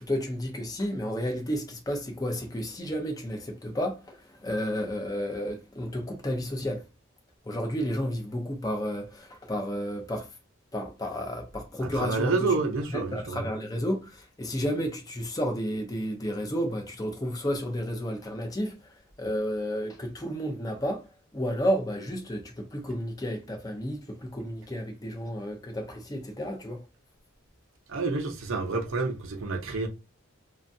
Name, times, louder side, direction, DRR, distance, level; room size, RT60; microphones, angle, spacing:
voice 1, 0.0-6.8 7.4-10.3 10.7-12.5 12.9-21.1 21.3-26.8, equal, 15° left, 0.5 m, -32 dB
voice 2, 11.8-13.5 27.9-29.9, right 3 dB, 70° right, 0.6 m, -29 dB
3.0 x 2.3 x 2.6 m
head